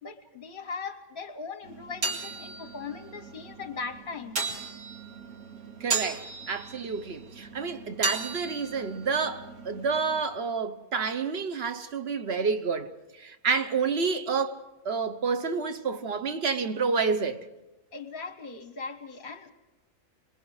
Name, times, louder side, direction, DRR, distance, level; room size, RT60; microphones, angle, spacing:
voice 1, 0.0-4.6 17.9-19.5, left 5 dB, 45° left, 0.9 m, -39 dB
sound 1, 1.6-10.2, right 4 dB, 80° right, 2.6 m, -36 dB
voice 2, 5.8-12.9 13.2-17.4, right 5 dB, 50° right, 1.2 m, -29 dB
27.0 x 20.5 x 4.8 m
omnidirectional pair, 1.5 m